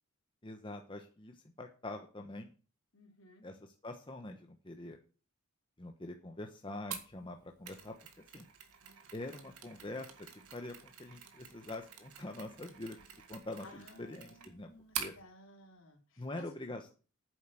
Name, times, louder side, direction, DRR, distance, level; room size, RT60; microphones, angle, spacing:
voice 1, 0.4-2.5 3.4-5.0 5.8-8.5 9.1-13.0 13.3-14.7 15.0-15.1 16.2-16.9, left 2 dB, 25° left, 4 dB, 1.0 m, -45 dB
voice 2, 2.9-3.5 13.6-16.6, left 1 dB, 60° left, 2 dB, 3.6 m, -56 dB
Mechanisms, 6.9-15.2, right 8 dB, 85° right, 2.1 m, -47 dB
9.4 x 7.8 x 7.6 m, 0.37 s
head